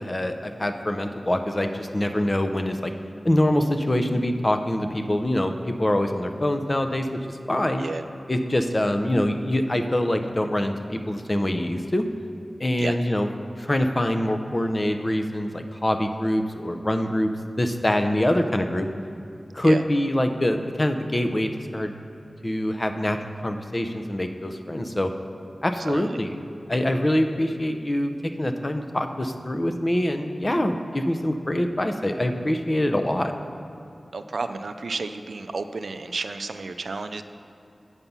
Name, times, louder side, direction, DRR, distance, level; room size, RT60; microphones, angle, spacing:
voice 1, 0.0-2.9 3.2-7.9 8.3-12.1 12.6-13.3 13.6-17.3 17.6-18.9 19.5-21.9 22.4-23.2 23.4-25.1 25.6-26.4 26.7-33.3, left 1 dB, 30° left, 7 dB, 0.6 m, -24 dB
voice 2, 25.9-26.2 34.1-37.2, right 3 dB, 80° right, 9 dB, 0.4 m, -31 dB
8.1 x 5.7 x 5.4 m, 2.7 s
wide cardioid pair, 60°, 0 cm